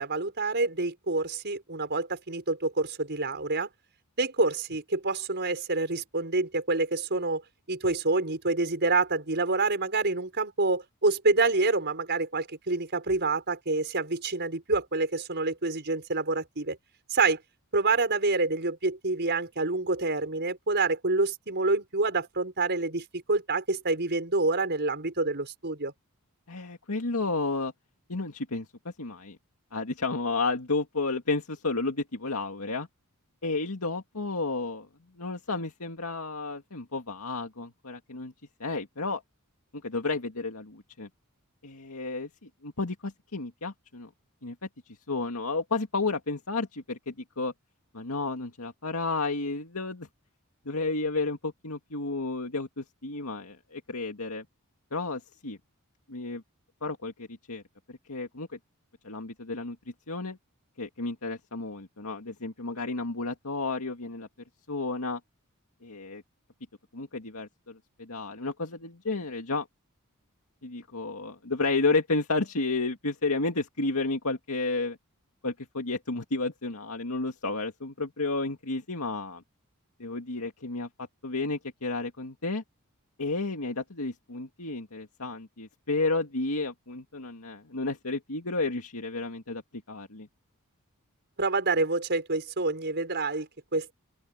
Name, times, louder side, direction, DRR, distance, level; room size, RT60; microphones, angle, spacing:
voice 1, 0.0-3.7 4.2-7.4 7.7-16.8 17.1-17.4 17.7-25.9 91.4-93.9, right 3 dB, 50° right, 5.6 m, -27 dB
voice 2, 26.5-27.7 28.1-29.4 29.7-32.9 33.4-34.9 35.2-38.3 38.6-39.2 39.8-41.1 41.6-44.1 44.4-44.6 44.9-47.5 47.9-50.1 50.7-54.5 54.9-55.6 56.1-56.4 56.8-57.6 57.9-58.5 59.0-59.8 60.1-60.4 60.8-64.3 64.7-65.2 65.8-66.2 66.9-69.7 70.6-75.0 75.4-79.4 80.0-82.6 83.2-89.6 89.9-90.3, left 3 dB, 75° left, 2.2 m, -32 dB
open air
head